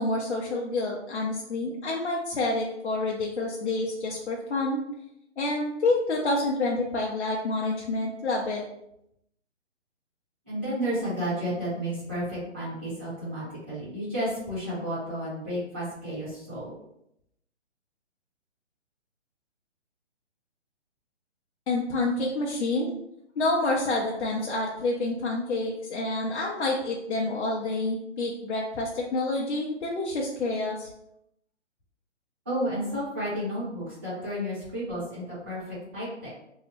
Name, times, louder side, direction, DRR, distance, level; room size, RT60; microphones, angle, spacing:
voice 1, 0.0-4.8 5.4-8.6 21.7-22.9 23.4-30.9, left 2 dB, 65° left, -2 dB, 0.6 m, -28 dB
voice 2, 10.5-16.7 32.4-36.3, equal, 10° right, -12 dB, 0.7 m, -32 dB
2.8 x 2.0 x 4.1 m, 0.79 s
hypercardioid pair, 170°, 36 cm